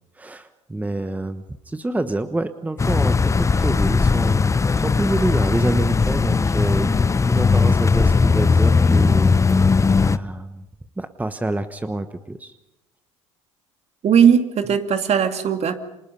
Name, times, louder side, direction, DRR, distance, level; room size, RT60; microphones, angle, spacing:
voice 1, 0.1-4.4 4.8-9.6 9.9-10.7 11.0-12.5, right 2 dB, 10° right, 11 dB, 1.2 m, -27 dB
sound 1, 2.8-10.2, left 4 dB, 20° left, 0.9 m, -18 dB
voice 2, 14.0-15.8, right 7 dB, 40° right, 7 dB, 2.5 m, -18 dB
29.5 x 26.5 x 5.5 m, 0.92 s
hypercardioid pair, 65°, 16 cm